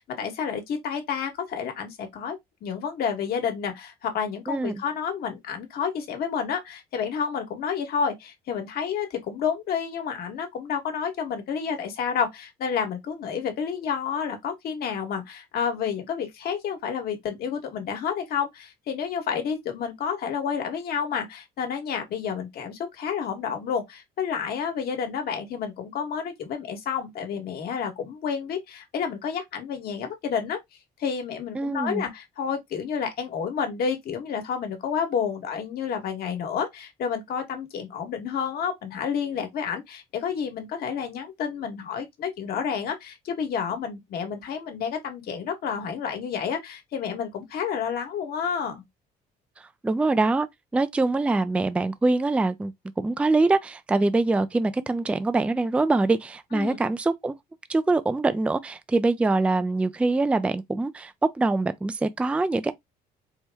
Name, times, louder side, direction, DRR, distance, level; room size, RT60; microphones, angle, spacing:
voice 1, 0.0-30.6 31.0-48.8 56.5-56.8, left 7 dB, 65° left, 1.3 m, -30 dB
voice 2, 4.5-4.8 31.6-32.0 49.8-50.5 50.7-57.3 57.7-62.7, right 3 dB, 5° right, 0.3 m, -24 dB
4.5 x 2.1 x 3.4 m
cardioid pair, 110°, 17 cm